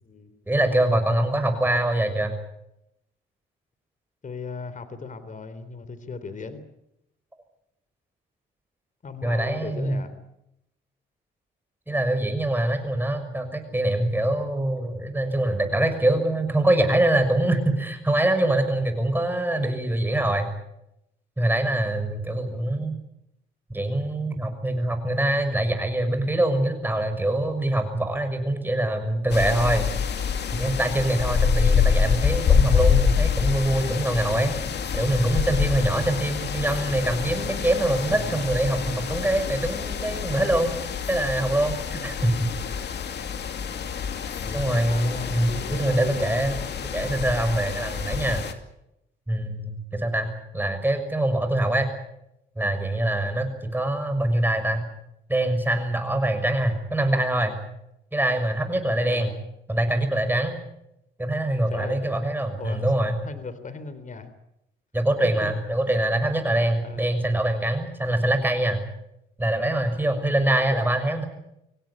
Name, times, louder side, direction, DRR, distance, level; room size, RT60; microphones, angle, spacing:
voice 1, 0.5-2.3 9.2-10.0 11.9-20.5 21.4-23.0 23.7-29.9 30.5-34.5 34.9-40.7 41.1-42.5 44.5-46.5 46.9-48.4 49.3-51.9 52.6-54.9 55.3-57.5 58.1-59.3 59.7-60.5 61.2-63.2 64.9-68.8 69.4-71.3, right 1 dB, 10° right, 7 dB, 6.2 m, -24 dB
voice 2, 4.2-6.6 9.0-10.1 22.5-22.7 37.9-38.4 44.4-46.4 59.0-59.4 61.7-62.0 62.6-62.9 63.2-64.3 65.9-66.0 66.8-67.1 70.7-70.9, left 4 dB, 40° left, 12 dB, 3.5 m, -37 dB
sound 1, 29.3-48.5, left 6 dB, 60° left, 2.5 m, -26 dB
25.5 x 17.0 x 9.9 m, 0.84 s
cardioid pair, 90°, 20 cm